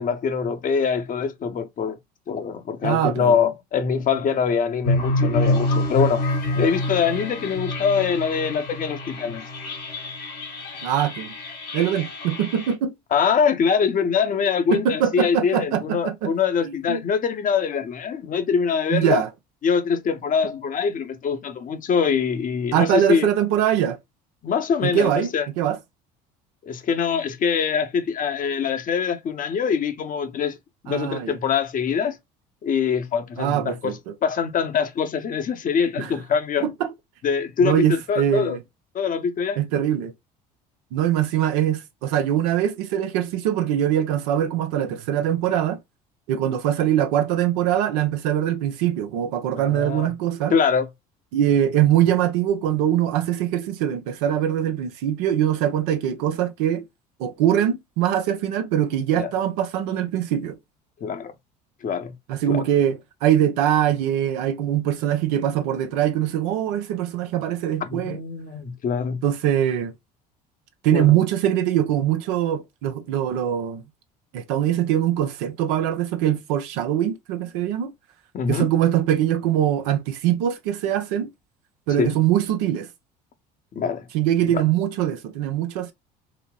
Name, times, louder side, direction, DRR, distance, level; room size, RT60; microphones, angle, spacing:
voice 1, 0.0-2.0 2.3-6.2 6.5-9.5 13.1-19.2 19.6-23.3 24.4-25.5 26.6-30.6 30.8-32.2 32.6-36.7 37.2-38.6 38.9-39.6 49.6-50.1 50.5-50.9 59.2-59.3 61.0-61.3 61.8-62.1 62.5-62.6 67.8-69.2 70.9-71.2 78.3-78.7 82.0-82.1 83.8-84.1 84.4-84.6, left 6 dB, 40° left, 0.7 m, -24 dB
voice 2, 2.8-3.4 10.8-11.3 11.7-12.9 14.7-16.3 16.6-17.0 18.9-19.3 22.7-24.0 24.8-25.3 25.6-25.8 30.9-31.4 33.4-34.1 36.0-36.1 36.6-36.9 37.6-38.6 39.6-40.1 40.9-45.8 46.3-50.5 51.3-56.8 57.2-60.6 62.3-68.2 69.2-69.9 70.8-73.8 74.3-77.9 78.5-81.3 81.9-82.9 84.1-85.9, right 11 dB, 75° right, 0.6 m, -22 dB
sound 1, 4.8-12.7, left 1 dB, 80° left, 1.4 m, -27 dB
4.0 x 2.0 x 2.3 m
hypercardioid pair, 65°, 21 cm